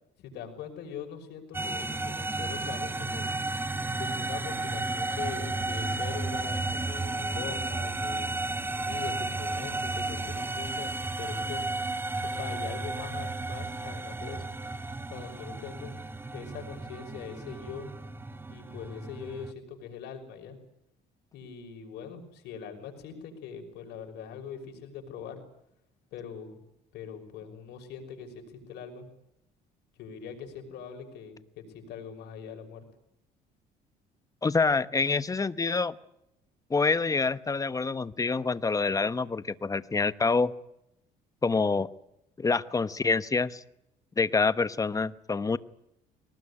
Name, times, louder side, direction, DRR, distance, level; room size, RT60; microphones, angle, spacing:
voice 1, 0.2-3.3 4.0-8.3 8.8-10.9 11.2-11.6 12.2-14.5 15.1-16.0 16.3-17.9 18.5-20.6 21.3-25.4 26.1-26.6 26.9-29.1 30.0-32.8, left 7 dB, 80° left, 4 dB, 6.0 m, -42 dB
sound 1, 1.5-19.5, right 2 dB, 15° right, 1.1 m, -33 dB
voice 2, 34.4-35.9 36.7-40.5 41.4-41.9 42.4-43.6 44.2-45.6, left 4 dB, 20° left, 14 dB, 1.0 m, -26 dB
22.5 x 19.5 x 9.9 m, 0.82 s
cardioid pair, 110°, 17 cm